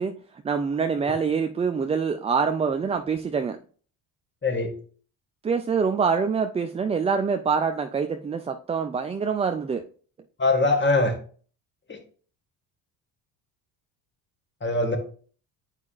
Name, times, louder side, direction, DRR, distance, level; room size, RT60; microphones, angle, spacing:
voice 1, 0.0-3.6 5.4-9.8, right 5 dB, 15° right, 0.3 m, -25 dB
voice 2, 4.4-4.7 10.4-11.1 14.6-15.0, left 2 dB, 25° left, 1.9 m, -22 dB
8.2 x 4.7 x 2.5 m
supercardioid pair, 70°, 46 cm